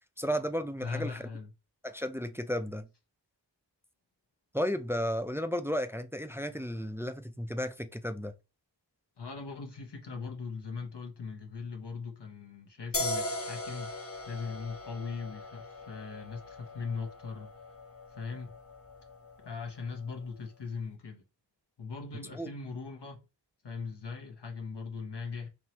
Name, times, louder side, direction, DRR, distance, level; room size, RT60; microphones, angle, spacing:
voice 1, 0.2-1.2 1.8-2.9 4.5-8.3 22.3-22.5, equal, 5° right, 0.3 m, -33 dB
voice 2, 0.8-1.5 9.2-17.5 18.1-18.5 19.4-21.2 21.8-23.2 23.6-25.5, left 5 dB, 70° left, 0.8 m, -40 dB
sound 1, 12.9-20.2, left 2 dB, 35° left, 0.7 m, -40 dB
4.5 x 3.0 x 2.8 m
wide cardioid pair, 60°, 43 cm